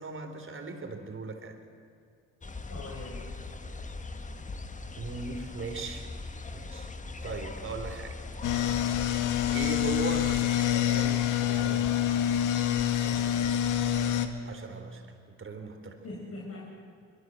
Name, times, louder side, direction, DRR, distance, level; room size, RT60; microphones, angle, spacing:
voice 1, 0.0-1.6 5.0-6.1 6.5-6.9 7.2-8.3 8.9-11.9 14.5-16.0, right 4 dB, 45° right, 5 dB, 3.8 m, -39 dB
sound 1, 2.4-10.4, left 3 dB, 25° left, 1.7 m, -40 dB
voice 2, 2.7-3.3 13.0-13.2 16.0-16.7, left 2 dB, 50° left, -3 dB, 5.5 m, -41 dB
sound 2, 8.4-14.3, left 11 dB, 85° left, 1.8 m, -26 dB
23.5 x 23.0 x 7.8 m, 2.4 s
cardioid pair, 90°, 30 cm